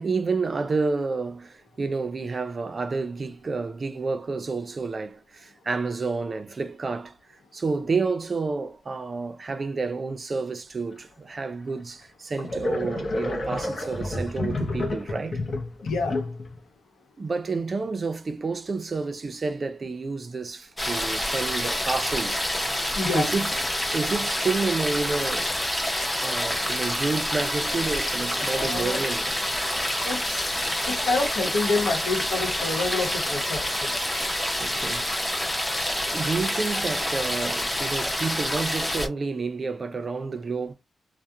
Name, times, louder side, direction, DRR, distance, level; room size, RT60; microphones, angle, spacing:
voice 1, 0.0-7.2 7.5-15.4 17.2-22.8 23.1-23.5 23.9-25.5 26.2-29.3 34.6-35.1 36.1-40.7, right 4 dB, 40° right, 0.4 m, -29 dB
sound 1, 11.7-11.8 12.4-16.6, left 2 dB, 45° left, 0.7 m, -30 dB
voice 2, 15.8-16.2 22.9-23.3 28.6-29.0 30.0-33.9, left 3 dB, 85° left, 0.9 m, -28 dB
sound 2, 20.8-39.1, left 1 dB, 10° left, 0.6 m, -27 dB
2.3 x 2.1 x 2.7 m
cardioid pair, 105°, 0 cm